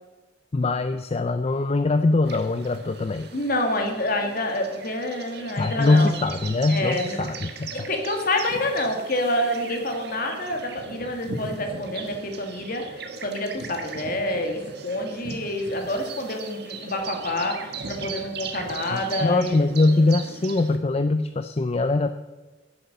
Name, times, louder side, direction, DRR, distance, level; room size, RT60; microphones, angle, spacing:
voice 1, 0.5-3.3 5.6-7.9 18.9-22.1, left 2 dB, 35° left, 10 dB, 0.5 m, -22 dB
sound 1, 2.2-20.8, right 4 dB, 60° right, 1.4 m, -38 dB
voice 2, 3.3-6.1 6.7-7.2 7.7-19.6, left 1 dB, 50° left, 4 dB, 2.1 m, -27 dB
11.5 x 8.6 x 6.7 m, 1.2 s
head